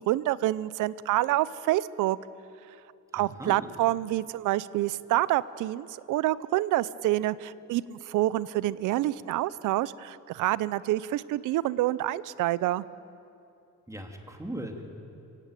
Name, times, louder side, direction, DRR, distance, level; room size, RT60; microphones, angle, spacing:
voice 1, 0.0-2.2 3.1-12.8, right 15 dB, 90° right, 19 dB, 0.6 m, -27 dB
voice 2, 3.1-3.7 13.9-14.8, right 1 dB, 10° right, 3 dB, 3.1 m, -38 dB
24.0 x 16.5 x 9.1 m, 2.6 s
cardioid pair, 90°, 30 cm